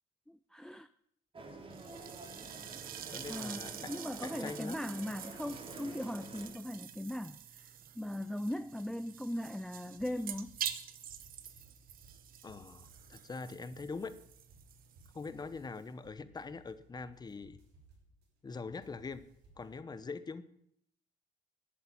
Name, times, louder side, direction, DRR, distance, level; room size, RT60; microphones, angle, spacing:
voice 1, 0.3-0.9 3.3-10.5, left 1 dB, 5° left, 0.4 m, -39 dB
sound 1, 1.3-6.5, right 2 dB, 30° right, 3.5 m, -48 dB
sound 2, 1.7-15.9, right 9 dB, 60° right, 1.2 m, -47 dB
voice 2, 3.1-3.9 4.2-4.8 12.4-14.2 15.1-17.6 18.4-19.3 19.6-20.4, left 4 dB, 25° left, 1.0 m, -43 dB
sound 3, 9.9-19.7, right 2 dB, 85° right, 6.3 m, -63 dB
11.5 x 8.2 x 8.9 m
cardioid pair, 110°, 17 cm